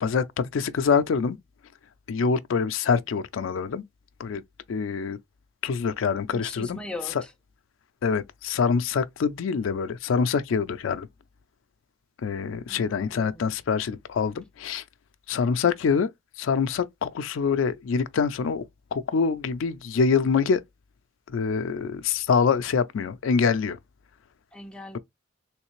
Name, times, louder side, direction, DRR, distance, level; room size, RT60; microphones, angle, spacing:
voice 1, 0.0-1.4 2.1-3.8 4.2-4.4 4.7-5.2 5.6-6.8 8.0-11.1 12.2-14.8 15.3-16.1 16.4-18.6 18.9-20.6 21.3-23.8, left 5 dB, 80° left, 0.4 m, -25 dB
voice 2, 6.3-7.3 12.7-13.6 24.5-25.0, left 1 dB, 5° left, 0.6 m, -40 dB
3.2 x 3.1 x 3.0 m
head